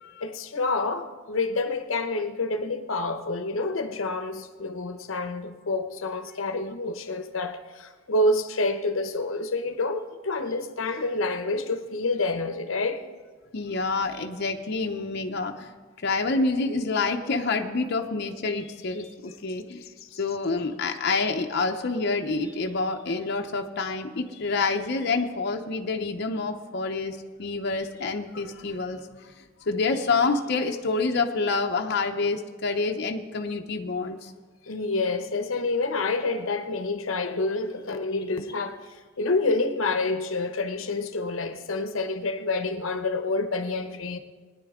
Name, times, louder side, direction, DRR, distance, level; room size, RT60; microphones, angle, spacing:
voice 1, 0.2-13.0 34.6-44.2, left 2 dB, 85° left, 0.8 m, -28 dB
voice 2, 13.5-15.7 16.0-19.8 20.1-29.3 29.7-34.3, left 3 dB, 55° left, 0.7 m, -27 dB
20.5 x 9.9 x 3.6 m
head